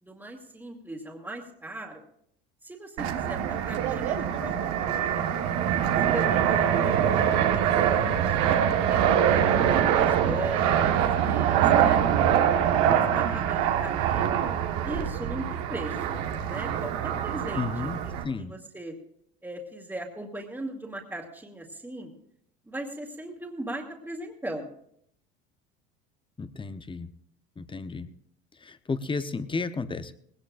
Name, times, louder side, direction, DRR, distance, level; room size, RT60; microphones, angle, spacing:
voice 1, 0.0-2.1 2.6-4.5 4.8-5.5 6.1-12.0 12.5-14.4 14.8-16.2 16.5-17.9 18.4-19.0 19.4-22.1 22.7-24.7, right 1 dB, 5° right, -5 dB, 2.3 m, -39 dB
Fixed-wing aircraft airplane, 3.0-18.2, right 9 dB, 65° right, 1.4 m, -24 dB
voice 2, 17.6-18.0 18.2-18.5 26.4-27.1 27.6-28.1 28.6-30.1, left 4 dB, 15° left, 12 dB, 0.9 m, -32 dB
19.5 x 17.5 x 2.5 m, 0.69 s
hypercardioid pair, 85°, 31 cm